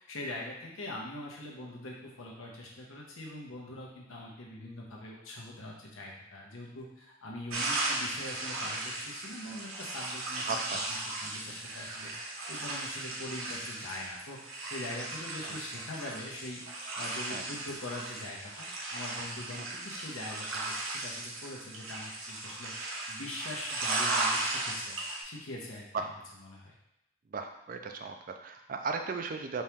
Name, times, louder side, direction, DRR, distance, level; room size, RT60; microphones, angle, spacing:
voice 1, 0.0-12.1 12.5-16.6 17.0-25.0 25.2-26.1 26.5-26.7, left 1 dB, 80° left, -2 dB, 1.0 m, -43 dB
sound 1, 7.5-25.2, right 2 dB, 85° right, 0.9 m, -36 dB
voice 2, 10.5-10.8 15.4-15.6 17.3-17.5 19.6-19.7 25.9-26.1 27.3-29.6, right 4 dB, 40° right, 5 dB, 0.3 m, -36 dB
4.4 x 3.0 x 3.5 m, 0.86 s
head